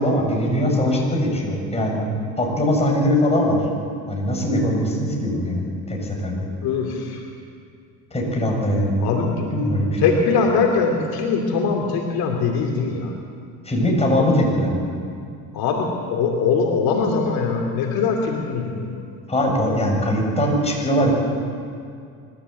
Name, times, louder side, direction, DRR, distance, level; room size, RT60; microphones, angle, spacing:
voice 1, 0.0-2.0 2.4-3.6 4.1-6.5 8.1-10.0 13.7-14.8 19.3-21.1, equal, 15° left, -1 dB, 7.0 m, -21 dB
voice 2, 6.6-7.2 9.0-9.5 10.0-13.1 14.2-14.3 15.5-19.0, left 5 dB, 70° left, 1 dB, 2.7 m, -22 dB
25.5 x 13.5 x 8.3 m, 2.3 s
supercardioid pair, 85°, 38 cm